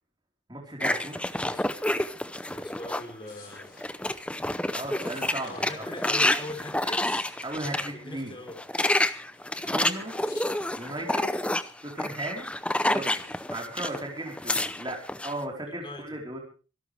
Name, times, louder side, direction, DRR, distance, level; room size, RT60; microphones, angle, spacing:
voice 1, 0.5-1.2 4.7-5.8 7.4-8.3 9.6-10.1 10.7-11.4 11.8-12.5 12.9-16.4, right 1 dB, 20° right, 0 dB, 4.4 m, -36 dB
sound 1, 0.8-3.1 3.5-7.9 8.5-14.0 14.3-15.3, left 1 dB, 5° left, 0.7 m, -29 dB
voice 2, 1.4-1.7 2.5-3.8 5.4-7.1 7.9-8.6 15.3-15.4 15.7-16.2, left 1 dB, 25° left, 5 dB, 3.9 m, -41 dB
sound 2, 3.2-4.4 5.0-6.4 6.7-7.9 8.4-12.0 12.3-14.1, left 4 dB, 50° left, 7.2 m, -52 dB
25.5 x 12.0 x 3.5 m, 0.36 s
head